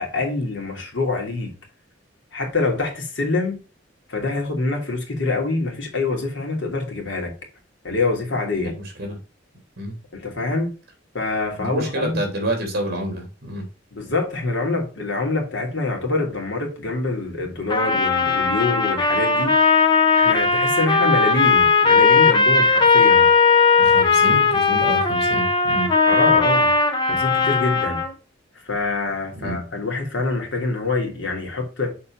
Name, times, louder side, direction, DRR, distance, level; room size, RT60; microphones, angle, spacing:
voice 1, 0.0-1.5 2.3-3.6 4.1-7.3 7.8-8.7 10.1-10.7 11.1-12.2 13.9-19.6 20.1-23.3 26.1-26.7 27.0-28.0 28.6-31.9, left 3 dB, 70° left, 2.7 m, -25 dB
voice 2, 8.6-9.2 9.8-9.9 11.6-13.6 23.8-25.9 29.4-29.6, right 1 dB, 55° right, 3.2 m, -28 dB
Trumpet, 17.7-28.1, left 4 dB, 25° left, 1.1 m, -17 dB
6.8 x 4.4 x 5.8 m
head